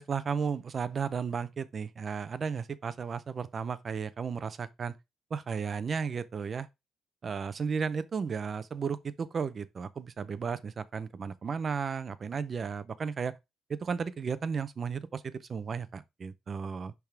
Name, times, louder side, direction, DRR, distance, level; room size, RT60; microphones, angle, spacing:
voice 1, 0.0-5.0 5.3-6.7 7.2-13.4 13.7-16.9, right 6 dB, 35° right, 0.5 m, -34 dB
10.5 x 3.5 x 3.3 m
cardioid pair, 170°, 0 cm